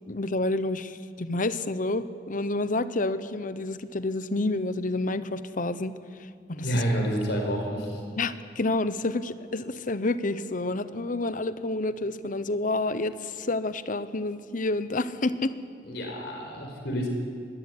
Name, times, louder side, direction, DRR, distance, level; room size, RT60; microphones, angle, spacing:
voice 1, 0.1-5.9 6.5-6.8 8.2-15.5, left 2 dB, 50° left, 13 dB, 1.0 m, -29 dB
voice 2, 6.6-8.0 15.8-17.1, equal, 70° left, 2 dB, 4.9 m, -29 dB
22.5 x 18.0 x 9.8 m, 2.2 s
head